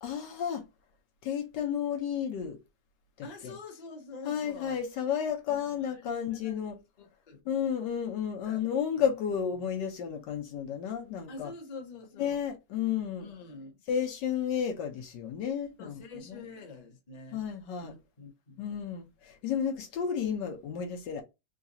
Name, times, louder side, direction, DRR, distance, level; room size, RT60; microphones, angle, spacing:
voice 1, 0.0-0.7 1.2-2.6 3.2-3.5 4.2-6.8 7.4-11.5 12.2-13.3 13.9-16.0 16.3-16.4 17.3-17.9 18.6-21.2, left 8 dB, 85° left, 1.5 m, -32 dB
voice 2, 3.2-4.8 5.5-6.6 7.0-7.4 8.4-8.6 11.3-12.4 13.2-13.8 15.8-17.4 17.8-18.6, left 3 dB, 30° left, 0.8 m, -46 dB
3.9 x 2.4 x 2.7 m
omnidirectional pair, 1.8 m